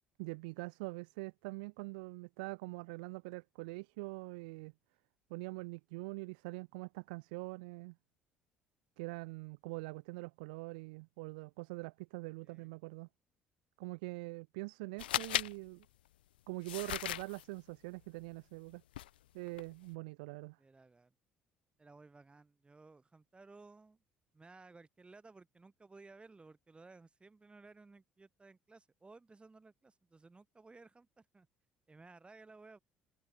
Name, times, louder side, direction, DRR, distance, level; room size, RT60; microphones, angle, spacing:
voice 1, 0.2-4.7 5.3-8.0 9.0-13.1 13.8-15.9 16.5-18.8 19.3-20.6, right 27 dB, 65° right, 0.8 m, -44 dB
sound 1, 15.0-15.5 16.6-17.4 18.9-19.1 19.5-19.7, left 14 dB, 75° left, 0.4 m, -36 dB
voice 2, 20.6-21.1 21.8-24.0 24.3-31.5 31.9-32.8, right 3 dB, 20° right, 3.0 m, -58 dB
figure-of-eight pair, 55°, 5 cm